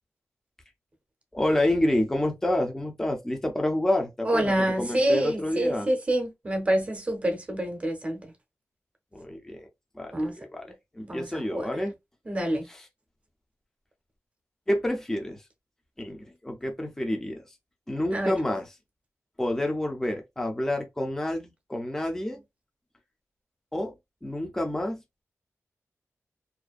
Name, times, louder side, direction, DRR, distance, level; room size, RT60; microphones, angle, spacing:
voice 1, 1.3-5.9 9.1-9.7 10.0-10.7 10.9-11.9 12.7-12.8 14.7-15.4 16.0-17.4 17.9-18.7 19.4-22.4 23.7-23.9 24.2-25.2, left 1 dB, 10° left, 0.4 m, -28 dB
voice 2, 4.2-8.3 10.1-10.3 11.0-11.7 12.3-12.6 18.1-18.3, right 1 dB, 25° right, 0.7 m, -27 dB
2.5 x 2.1 x 2.3 m
wide cardioid pair, 130°, 5 cm